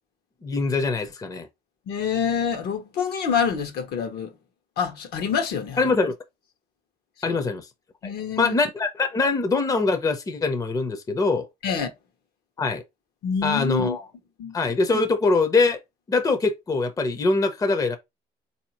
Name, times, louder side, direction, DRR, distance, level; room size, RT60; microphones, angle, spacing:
voice 1, 0.4-1.5 5.8-6.2 7.2-7.7 8.0-8.1 8.4-11.5 12.6-12.8 13.4-14.1 14.5-15.8 16.1-18.0, left 3 dB, 20° left, 0.6 m, -23 dB
voice 2, 1.9-4.3 4.8-5.9 7.2-7.4 8.0-8.5 11.6-11.9 13.2-14.0 14.4-14.6, left 7 dB, 70° left, 1.1 m, -26 dB
3.9 x 2.7 x 2.9 m
cardioid pair, 110°, 17 cm